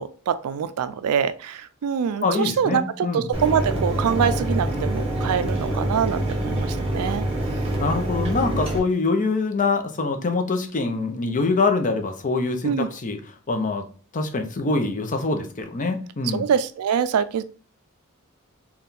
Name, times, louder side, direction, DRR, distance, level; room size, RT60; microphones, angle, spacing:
voice 1, 0.0-7.3 8.2-8.3 12.6-12.9 16.3-17.4, right 7 dB, 80° right, 13 dB, 0.4 m, -24 dB
voice 2, 2.2-3.3 7.8-13.2 13.5-13.8 14.1-16.5, left 3 dB, 35° left, 6 dB, 0.6 m, -24 dB
Mechanisms, 3.3-8.8, right 1 dB, 25° right, 0.9 m, -25 dB
4.2 x 2.3 x 3.6 m, 0.39 s
head